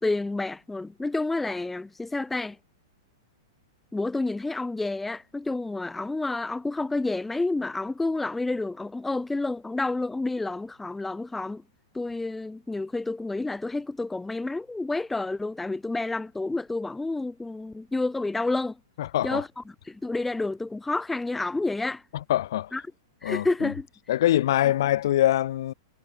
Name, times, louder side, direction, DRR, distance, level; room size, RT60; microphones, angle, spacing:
voice 1, 0.0-2.6 3.9-11.6 11.9-18.8 19.2-22.0 22.7-22.8 23.2-23.9, left 2 dB, 5° left, 0.6 m, -29 dB
voice 2, 19.0-19.4 22.1-22.7 23.2-23.7 24.1-25.7, left 13 dB, 65° left, 1.6 m, -24 dB
hypercardioid pair, 115°, 2 cm